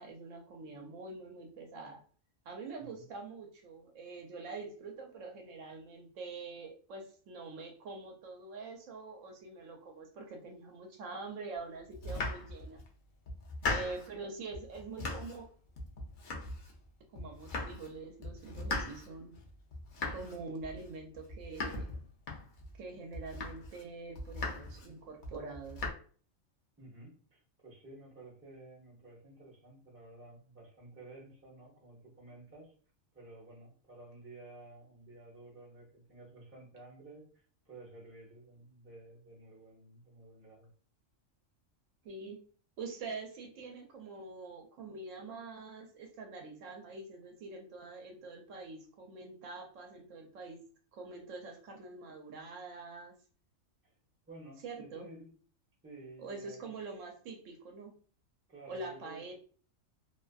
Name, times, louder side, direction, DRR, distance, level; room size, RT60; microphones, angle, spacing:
voice 1, 0.0-2.0 2.5-12.8 13.7-15.5 16.3-16.4 17.1-19.3 20.1-21.9 22.8-25.8 42.0-42.4 42.8-50.6 50.9-53.2 54.6-55.1 56.2-57.9 58.7-59.3, right 3 dB, 75° right, 2 dB, 0.9 m, -45 dB
Domestic sounds home sounds, 11.9-12.9 13.3-14.2 14.5-15.5 15.8-16.9 17.1-17.9 18.2-22.8 23.1-23.8 24.1-24.9 25.2-25.9, left 2 dB, 60° left, 0.5 m, -39 dB
voice 2, 13.6-13.9 26.8-32.7 33.1-40.7 53.8-54.0 54.2-55.3 55.8-56.6 58.5-59.3, right 2 dB, 15° right, -3 dB, 0.6 m, -53 dB
2.5 x 2.4 x 2.2 m, 0.42 s
omnidirectional pair, 1.4 m